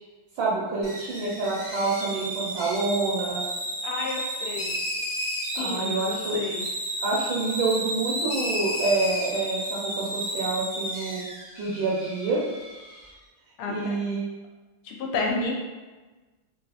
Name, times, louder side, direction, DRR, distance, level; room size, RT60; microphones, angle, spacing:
voice 1, 0.4-3.4 5.5-6.4 7.0-11.2 11.6-12.4 13.7-14.3, right 3 dB, 75° right, -7 dB, 1.4 m, -27 dB
sound 1, 0.8-13.1, right 1 dB, 50° right, 0.5 m, -32 dB
voice 2, 3.8-4.7 5.5-6.7 13.6-13.9 14.8-15.5, left 3 dB, 80° left, 0 dB, 1.4 m, -31 dB
3.5 x 2.7 x 2.3 m, 1.2 s
omnidirectional pair, 2.3 m